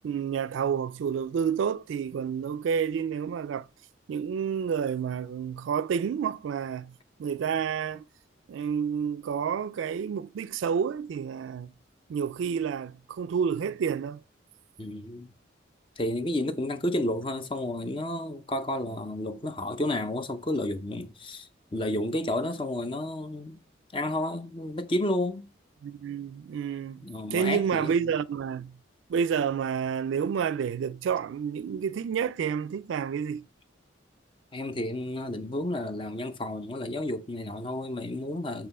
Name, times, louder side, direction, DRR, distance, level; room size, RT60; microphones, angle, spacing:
voice 1, 0.0-3.7 4.1-6.9 7.2-8.1 8.5-11.7 12.1-14.2 25.8-27.1 27.3-28.7 29.1-33.4, right 7 dB, 80° right, 0.3 m, -29 dB
voice 2, 14.8-15.3 16.0-23.6 23.9-25.5 27.0-28.1 34.5-38.7, left 1 dB, 25° left, 0.5 m, -31 dB
7.6 x 3.0 x 4.1 m
head